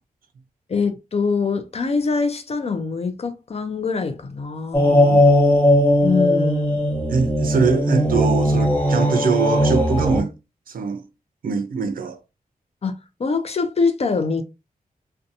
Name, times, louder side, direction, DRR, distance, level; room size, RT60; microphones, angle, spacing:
voice 1, 0.7-5.2 6.0-6.9 12.8-12.9 13.2-14.4, left 4 dB, 45° left, 0.5 m, -24 dB
sound 1, 4.7-10.2, left 1 dB, 10° left, 1.0 m, -18 dB
voice 2, 5.1-5.4 7.1-10.3 10.7-11.0 11.4-12.2, right 5 dB, 70° right, 0.5 m, -23 dB
2.6 x 2.2 x 2.6 m
wide cardioid pair, 90°, 15 cm